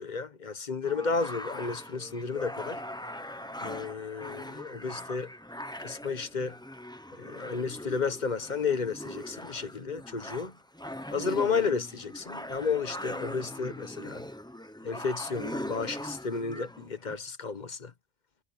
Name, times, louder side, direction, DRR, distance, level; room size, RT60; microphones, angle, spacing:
voice 1, 0.0-2.8 3.6-5.3 5.8-6.6 7.1-10.5 11.1-14.2 14.8-17.9, left 5 dB, 40° left, 1.1 m, -32 dB
sound 1, 0.8-17.2, left 1 dB, 5° left, 0.9 m, -41 dB
omnidirectional pair, 1.3 m